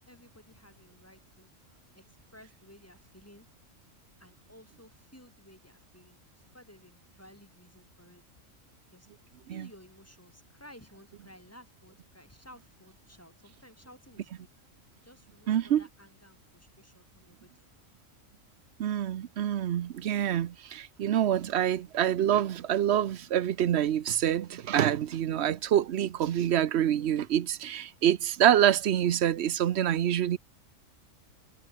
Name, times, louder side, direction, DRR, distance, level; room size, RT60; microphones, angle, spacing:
voice 1, 0.0-1.5 1.9-3.5 4.2-6.2 6.5-8.2 8.9-9.1 9.5-14.5 15.0-17.7, equal, 10° left, 7.2 m, -55 dB
voice 2, 15.5-15.8 18.8-30.4, right 10 dB, 60° right, 0.9 m, -26 dB
omnidirectional pair, 1.4 m